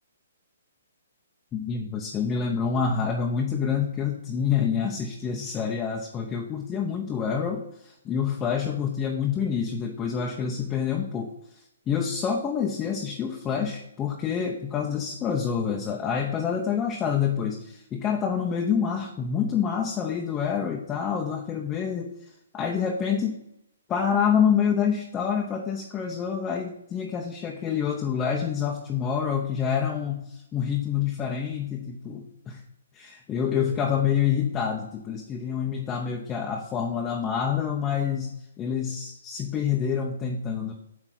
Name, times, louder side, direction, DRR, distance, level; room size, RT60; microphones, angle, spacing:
voice 1, 1.5-11.3 11.9-23.4 23.9-32.6 32.9-40.7, left 7 dB, 15° left, 0 dB, 0.8 m, -27 dB
9.0 x 3.5 x 6.0 m, 0.80 s
hypercardioid pair, 155°, 0 cm